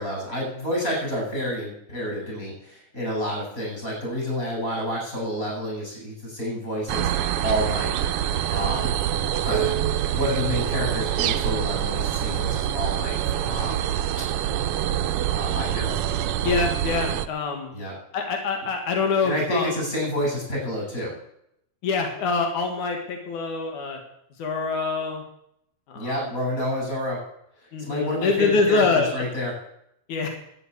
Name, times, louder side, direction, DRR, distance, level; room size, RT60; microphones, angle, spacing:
voice 1, 0.0-7.1 7.4-7.9 8.5-8.9 9.4-9.7 10.1-13.9 15.3-16.0 17.7-18.0 19.2-21.1 25.9-27.2 27.8-29.5, equal, 25° left, -2 dB, 7.8 m, -29 dB
sound 1, 6.9-17.3, right 11 dB, 80° right, 1.3 m, -25 dB
voice 2, 16.4-17.7 18.1-19.9 21.8-24.0 24.4-25.2 25.9-26.3 27.7-29.1 30.1-30.3, left 4 dB, 90° left, 3 dB, 3.2 m, -25 dB
12.0 x 9.1 x 8.4 m, 0.76 s
omnidirectional pair, 3.3 m